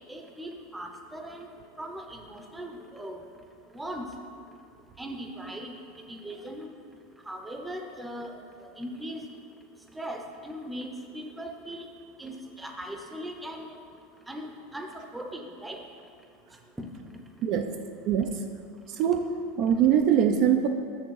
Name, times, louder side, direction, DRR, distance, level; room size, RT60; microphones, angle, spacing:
voice 1, 0.1-1.5 1.8-3.2 3.7-4.1 5.0-5.8 6.1-6.7 7.3-9.2 9.9-10.9 11.1-11.9 12.2-13.8 14.3-14.5 14.7-15.8, right 1 dB, 5° right, 3 dB, 0.7 m, -39 dB
voice 2, 17.4-17.7 18.1-18.5 18.9-20.7, right 8 dB, 50° right, 6 dB, 0.4 m, -23 dB
6.9 x 6.4 x 4.7 m, 2.3 s
supercardioid pair, 140°, 0 cm